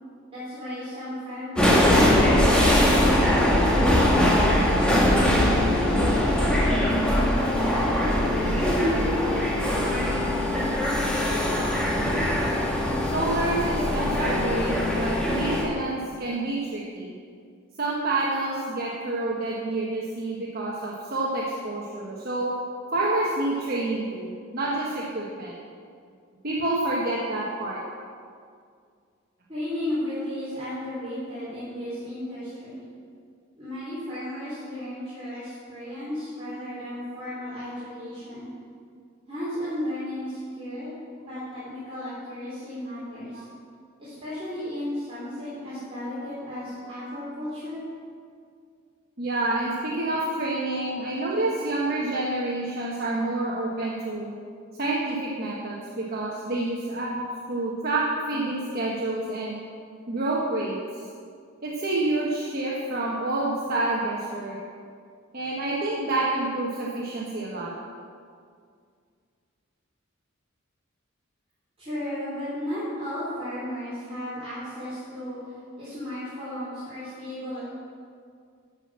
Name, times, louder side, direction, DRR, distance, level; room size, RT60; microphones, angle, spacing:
voice 1, 0.3-4.8 5.4-7.1 7.7-10.9 29.5-32.8 33.6-38.5 39.3-43.4 44.0-47.8 71.8-77.6, left 1 dB, 30° right, -12 dB, 3.4 m, -35 dB
sound 1, 1.6-15.6, left 1 dB, 5° left, 1.7 m, -22 dB
voice 2, 13.1-17.1 17.8-22.5 22.9-25.6 26.4-27.8 30.5-30.7 43.3-43.4 49.2-54.3 54.8-59.5 60.1-60.8 61.6-64.6 65.3-67.7 76.5-76.7, right 2 dB, 45° right, -5 dB, 1.3 m, -28 dB
12.5 x 6.0 x 7.3 m, 2.2 s
head